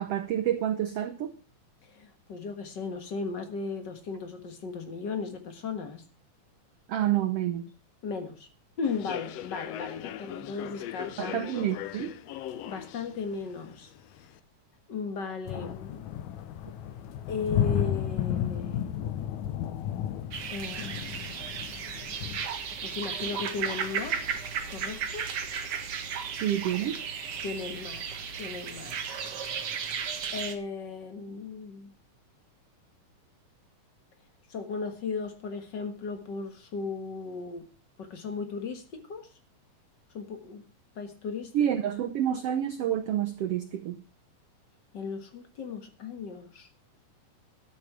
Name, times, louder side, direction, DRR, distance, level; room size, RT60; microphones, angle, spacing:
voice 1, 0.0-1.3 6.9-7.6 11.2-12.1 26.4-27.0 41.5-44.0, right 11 dB, 80° right, 1.3 m, -28 dB
voice 2, 1.9-6.0 8.0-8.5 8.8-11.5 12.6-13.9 14.9-16.1 17.3-18.9 20.5-21.7 22.8-24.2 24.7-25.3 27.4-28.1 28.4-29.0 30.3-31.9 34.5-37.7 38.0-39.3 40.1-40.6 40.9-41.5 44.9-46.7, left 4 dB, 45° left, 1.6 m, -36 dB
Human voice / Subway metro underground, 8.8-14.4, left 12 dB, 90° left, 1.4 m, -40 dB
sound 1, 15.5-22.5, left 10 dB, 70° left, 2.1 m, -32 dB
sound 2, 20.3-30.5, right 7 dB, 50° right, 2.0 m, -35 dB
12.5 x 8.4 x 6.0 m
omnidirectional pair, 3.8 m